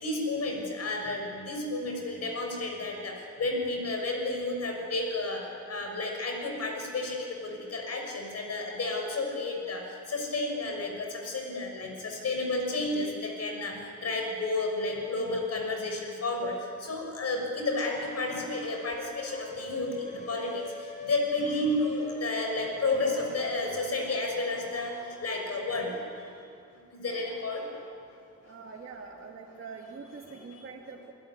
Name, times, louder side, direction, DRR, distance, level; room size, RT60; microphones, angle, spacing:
voice 1, 0.0-3.1 3.4-5.4 5.7-9.8 10.1-13.7 14.0-16.5 16.8-20.6 21.0-26.0 27.0-27.7 30.5-30.6, left 2 dB, 55° left, 1 dB, 6.3 m, -31 dB
sound 1, 17.7-23.9, left 2 dB, 25° left, 6.2 m, -45 dB
voice 2, 28.4-31.1, right 5 dB, 45° right, -2 dB, 2.3 m, -44 dB
28.0 x 17.5 x 9.7 m, 2.5 s
cardioid pair, 100°, 30 cm